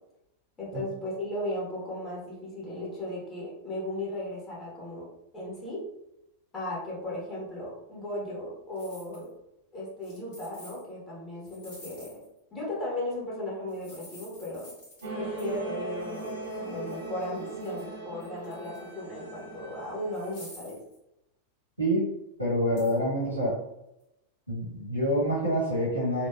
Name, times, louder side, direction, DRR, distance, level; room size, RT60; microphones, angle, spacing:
voice 1, 0.6-5.1 5.3-5.8 6.5-9.3 9.7-12.2 12.5-14.7 15.1-20.8, left 1 dB, 20° left, -7 dB, 1.4 m, -36 dB
sound 1, 8.7-9.3 10.0-10.8 11.4-12.4 13.7-15.1 15.4-15.6 16.0-17.9 18.2-18.9 19.4-19.5 20.1-21.0 22.8-23.0, left 1 dB, 50° left, 1.4 m, -51 dB
sound 2, 15.0-20.3, right 2 dB, 60° right, 0.8 m, -38 dB
voice 2, 21.8-22.1 22.4-23.6 24.5-26.3, equal, 90° right, -6 dB, 1.3 m, -27 dB
3.3 x 2.3 x 2.3 m, 0.86 s
figure-of-eight pair, 90°, 0 cm